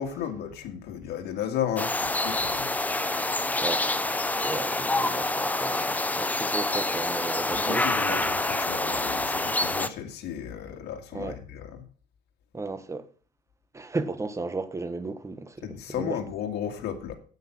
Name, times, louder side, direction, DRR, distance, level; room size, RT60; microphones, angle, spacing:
voice 1, 0.0-2.7 7.5-11.9 15.6-17.1, left 9 dB, 80° left, 2.1 m, -34 dB
sound 1, 1.8-9.9, left 2 dB, 10° left, 0.8 m, -27 dB
voice 2, 4.4-8.2 11.1-11.4 12.5-13.0 13.7-16.2, right 3 dB, 15° right, 1.2 m, -34 dB
9.3 x 8.4 x 6.1 m
cardioid pair, 110°, 17 cm